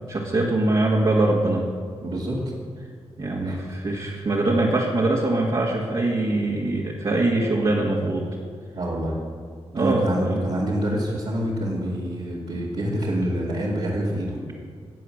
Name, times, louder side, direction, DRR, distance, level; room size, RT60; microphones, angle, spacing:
voice 1, 0.1-1.7 3.2-8.3 9.7-10.4, right 2 dB, 45° right, -4 dB, 1.9 m, -23 dB
voice 2, 2.0-2.4 3.4-3.6 8.7-9.2 9.8-14.4, right 1 dB, 65° right, -7 dB, 2.5 m, -26 dB
14.0 x 8.0 x 6.5 m, 2.2 s
cardioid pair, 70°, 11 cm